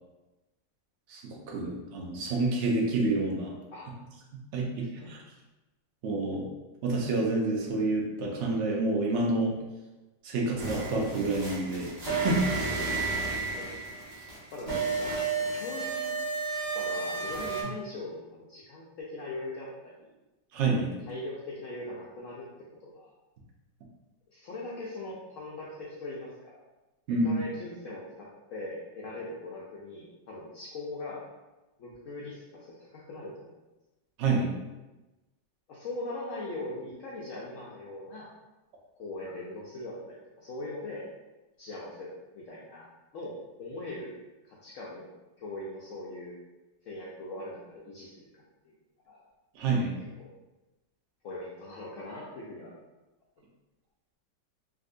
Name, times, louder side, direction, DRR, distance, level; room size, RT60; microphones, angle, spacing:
voice 1, 1.1-3.5 4.5-5.2 6.0-6.5 6.8-9.5 10.2-12.7 20.5-20.9 27.1-27.4 34.2-34.5 49.5-49.9, right 2 dB, 70° right, -1 dB, 0.7 m, -28 dB
sound 1, 10.6-17.6, right 3 dB, 25° right, 0.9 m, -32 dB
voice 2, 12.7-13.7 14.1-16.2 16.7-20.1 21.1-22.5 22.8-23.1 24.3-26.6 27.2-31.2 31.8-33.6 35.7-38.3 39.0-41.1 41.6-42.9 43.1-44.1 44.4-45.1 45.4-46.4 46.8-48.7 49.1-49.2 50.2-50.3 51.2-52.7, left 2 dB, 80° left, -5 dB, 0.7 m, -41 dB
3.6 x 2.6 x 2.5 m, 1.1 s
omnidirectional pair, 1.9 m